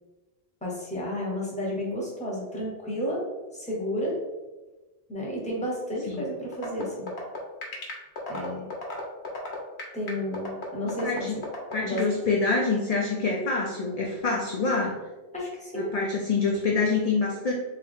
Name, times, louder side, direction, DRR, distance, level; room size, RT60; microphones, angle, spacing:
voice 1, 0.6-3.2 3.5-4.2 5.1-7.1 8.3-8.7 9.9-11.3 11.8-12.1 15.3-15.9, equal, 5° left, -4 dB, 0.9 m, -31 dB
sound 1, 6.5-12.1, left 3 dB, 80° left, 1.1 m, -34 dB
voice 2, 10.9-11.4 11.7-14.9 15.7-17.5, left 4 dB, 50° left, -2 dB, 0.5 m, -26 dB
3.7 x 2.8 x 3.5 m, 1.2 s
omnidirectional pair, 1.1 m